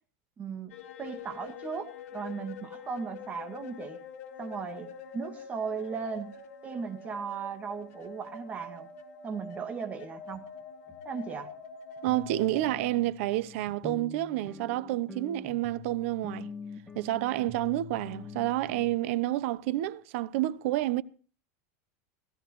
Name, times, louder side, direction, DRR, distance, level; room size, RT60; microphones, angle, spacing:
voice 1, 0.4-4.0 4.4-6.4 6.6-8.9 9.2-10.4 11.0-11.5, right 5 dB, 20° right, 2.0 m, -37 dB
sound 1, 0.7-12.9, left 5 dB, 70° left, 3.8 m, -46 dB
sound 2, 10.3-10.4 10.9-11.0 11.4-11.5 12.1-18.9, left 4 dB, ahead, 1.7 m, -45 dB
voice 2, 12.0-16.5 16.9-21.0, right 15 dB, 55° right, 0.8 m, -29 dB
18.5 x 16.5 x 3.1 m
supercardioid pair, 170°, 8 cm